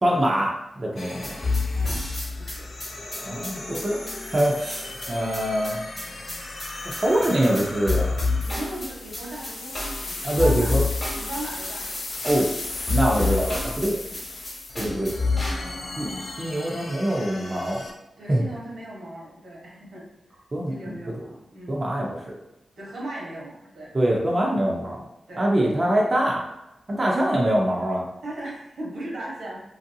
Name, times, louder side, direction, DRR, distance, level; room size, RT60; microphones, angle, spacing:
voice 1, 0.0-0.5 0.8-1.2 3.2-4.0 4.3-5.8 6.9-8.1 10.2-10.8 12.2-12.5 12.9-14.0 14.8-15.1 16.0-16.1 16.4-17.8 18.3-18.4 20.5-21.0 21.7-22.4 23.9-25.0 25.4-26.4 26.9-28.1, right 1 dB, 30° right, -3 dB, 0.5 m, -23 dB
sound 1, 1.0-17.9, left 2 dB, 60° left, 0.4 m, -37 dB
sound 2, 1.2-15.8, left 3 dB, 30° left, 1.0 m, -28 dB
voice 2, 1.7-2.7 8.4-9.7 10.0-11.9 14.1-14.2 15.1-15.8 18.2-20.1 20.7-21.9 22.8-23.9 25.3-25.5 28.2-29.6, right 1 dB, 85° right, -4 dB, 1.0 m, -38 dB
2.9 x 2.6 x 2.6 m, 0.91 s
wide cardioid pair, 105°, 0 cm